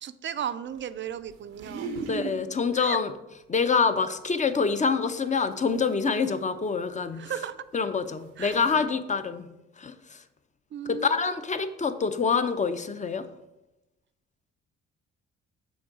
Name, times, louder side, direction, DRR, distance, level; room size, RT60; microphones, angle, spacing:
voice 1, 0.0-2.0 2.8-3.0 7.1-7.6 8.4-8.5 10.7-11.2, right 9 dB, 40° right, 13 dB, 0.4 m, -35 dB
sound 1, 1.3-2.4 4.4-4.5 5.7-5.8 7.2-7.3 8.0-8.1 8.4-8.8, right 4 dB, 85° right, 0.7 m, -36 dB
voice 2, 2.1-3.1 3.5-7.2 7.7-9.5 9.8-9.9 10.9-13.3, left 5 dB, 25° left, 11 dB, 0.5 m, -26 dB
6.3 x 3.8 x 4.7 m, 0.96 s
supercardioid pair, 55°, 30 cm